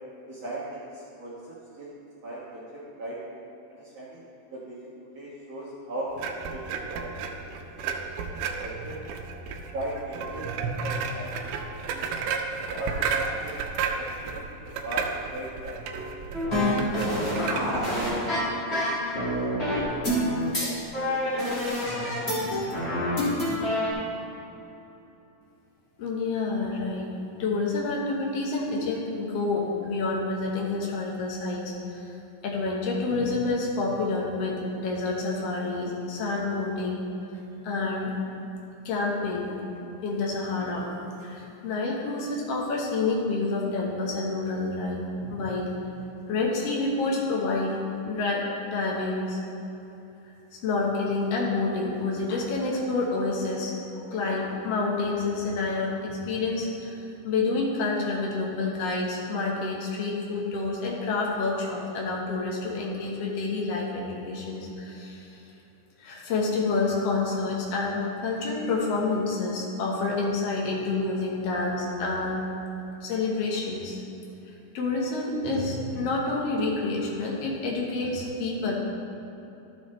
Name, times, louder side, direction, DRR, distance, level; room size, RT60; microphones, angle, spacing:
voice 1, 0.3-1.9 2.2-3.2 3.7-4.2 4.5-6.1 6.5-7.1 7.5-7.6 7.8-7.9 8.6-8.9 9.7-11.3 11.6-12.1 12.7-14.3 14.8-16.0 17.0-18.8 19.1-19.6 19.9-20.3 20.6-20.7 21.0-21.5 22.0-22.3, right 1 dB, 60° right, -8 dB, 1.8 m, -38 dB
sound 1, 6.2-18.1, right 5 dB, 85° right, 2.6 m, -33 dB
sound 2, 16.3-23.9, left 1 dB, 30° left, 1.0 m, -27 dB
voice 2, 26.0-27.1 27.4-32.1 32.4-37.0 37.6-38.1 38.8-45.7 46.3-47.8 48.0-49.4 50.6-65.4 66.0-72.5 73.0-74.0 74.7-78.7, left 3 dB, 85° left, -3 dB, 1.3 m, -28 dB
13.0 x 6.5 x 3.2 m, 3.0 s
omnidirectional pair, 4.5 m